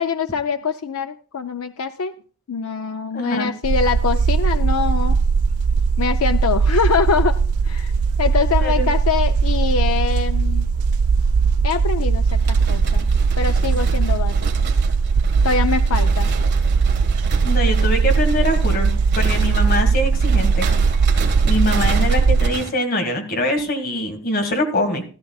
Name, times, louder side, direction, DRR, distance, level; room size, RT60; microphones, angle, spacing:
voice 1, 0.0-2.1 2.5-5.2 6.0-7.4 7.6-7.9 8.2-10.7 11.6-13.1 13.4-14.4 15.4-16.3, left 5 dB, 90° left, 8 dB, 0.5 m, -23 dB
voice 2, 3.1-3.5 8.6-8.9 17.4-20.7 21.4-25.0, left 1 dB, 45° left, 5 dB, 2.0 m, -23 dB
sound 1, 3.6-22.5, right 5 dB, 85° right, 0.4 m, -19 dB
sound 2, 12.3-22.7, right 4 dB, 50° right, 1.6 m, -32 dB
14.0 x 13.5 x 2.4 m, 0.39 s
head